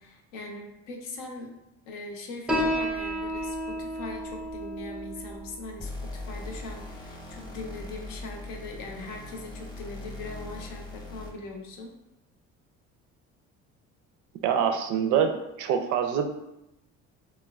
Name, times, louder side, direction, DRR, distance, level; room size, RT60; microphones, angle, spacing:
voice 1, 0.0-1.5 1.8-11.9, left 3 dB, 75° left, 2 dB, 0.6 m, -40 dB
Piano, 2.5-9.5, equal, 5° right, 0.3 m, -34 dB
sound 1, 5.8-11.5, left 2 dB, 15° left, 0.8 m, -40 dB
voice 2, 14.4-16.4, right 7 dB, 70° right, 6 dB, 0.4 m, -25 dB
3.1 x 2.1 x 2.3 m, 0.89 s
supercardioid pair, 75°, 31 cm